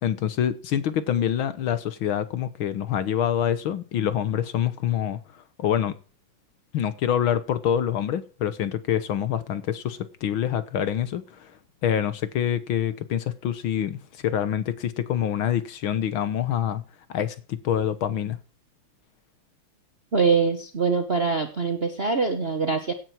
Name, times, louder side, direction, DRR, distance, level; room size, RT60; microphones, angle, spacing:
voice 1, 0.0-5.9 6.7-11.5 11.8-16.8 17.1-18.4, left 10 dB, 70° left, 1.8 m, -26 dB
voice 2, 20.1-22.9, right 5 dB, 35° right, 1.2 m, -23 dB
16.5 x 9.3 x 4.5 m
omnidirectional pair, 2.4 m